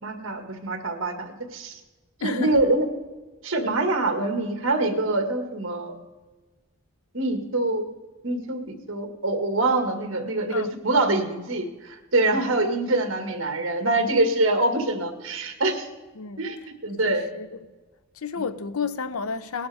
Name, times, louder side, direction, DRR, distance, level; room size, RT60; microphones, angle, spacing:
voice 1, 0.0-1.8 2.2-2.9 3.4-5.9 7.1-7.8 8.2-8.6 8.9-15.9 16.4-16.6 16.8-17.3, right 2 dB, 65° right, 1.9 m, -24 dB
voice 2, 2.2-2.6 10.5-10.7 12.2-12.5 16.2-16.5 17.0-17.7 18.1-19.7, left 5 dB, 85° left, 0.7 m, -32 dB
19.0 x 12.0 x 3.5 m
head